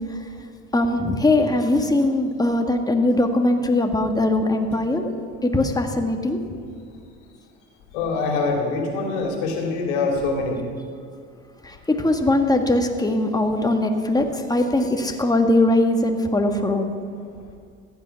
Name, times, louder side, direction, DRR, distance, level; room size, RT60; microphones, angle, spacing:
voice 1, 0.7-5.1 5.4-6.4 12.0-16.9, left 2 dB, 10° left, 4 dB, 1.6 m, -20 dB
voice 2, 7.9-10.6, left 3 dB, 80° left, 1 dB, 2.7 m, -24 dB
14.5 x 9.4 x 5.8 m, 2.2 s
hypercardioid pair, 75°, 36 cm